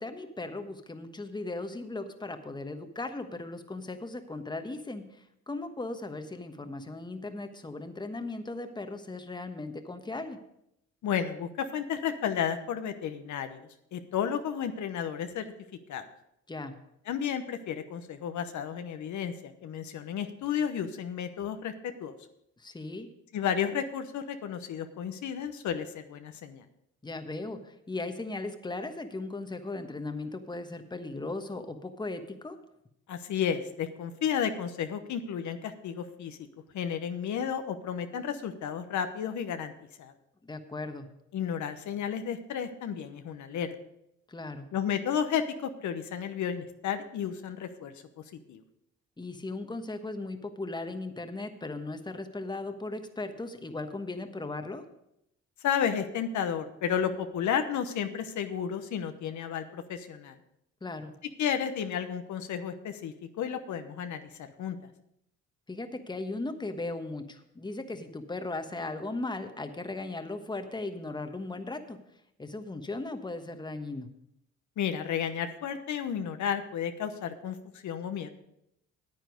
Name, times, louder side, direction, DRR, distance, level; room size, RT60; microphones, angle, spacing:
voice 1, 0.0-10.4 16.5-16.7 22.6-23.1 27.0-32.6 40.4-41.1 44.3-44.7 49.2-54.8 60.8-61.1 65.7-72.0 72.4-74.1, left 2 dB, 15° left, 7 dB, 1.2 m, -37 dB
voice 2, 11.0-13.6 13.9-15.4 15.9-16.0 17.1-21.7 22.0-22.1 23.3-26.6 33.1-36.4 36.7-39.7 40.0-40.1 41.3-43.7 44.7-47.9 48.5-48.6 55.6-60.4 61.4-64.8 74.8-78.3, left 8 dB, 70° left, 8 dB, 1.0 m, -32 dB
9.5 x 9.0 x 5.1 m, 0.79 s
supercardioid pair, 70°, 31 cm